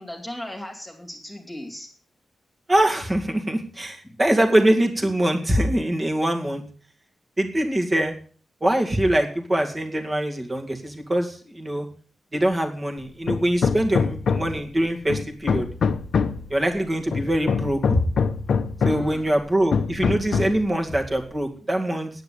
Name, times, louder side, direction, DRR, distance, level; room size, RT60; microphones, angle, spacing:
voice 1, 0.0-1.9 18.9-19.4, left 1 dB, 10° left, 1 dB, 2.6 m, -37 dB
voice 2, 2.7-6.6 7.4-8.1 8.6-11.9 12.3-15.7 16.5-18.0 18.8-22.1, right 1 dB, 20° right, 3 dB, 2.2 m, -23 dB
Hammer, 13.3-14.7 15.1-16.5 17.1-19.2 19.7-20.7, left 5 dB, 65° left, 0.9 m, -24 dB
9.8 x 8.9 x 8.5 m, 0.43 s
wide cardioid pair, 155°, 0 cm